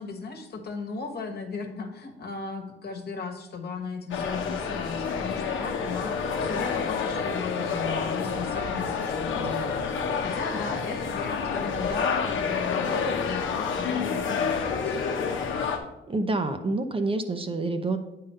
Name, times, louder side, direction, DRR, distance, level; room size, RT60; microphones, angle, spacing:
voice 1, 0.0-15.0, left 4 dB, 55° left, 4 dB, 1.3 m, -36 dB
sound 1, 4.1-15.8, left 5 dB, 75° left, 0.9 m, -29 dB
voice 2, 16.1-18.0, right 2 dB, 25° right, 7 dB, 0.7 m, -28 dB
8.6 x 3.8 x 5.5 m, 0.94 s
cardioid pair, 90°, 20 cm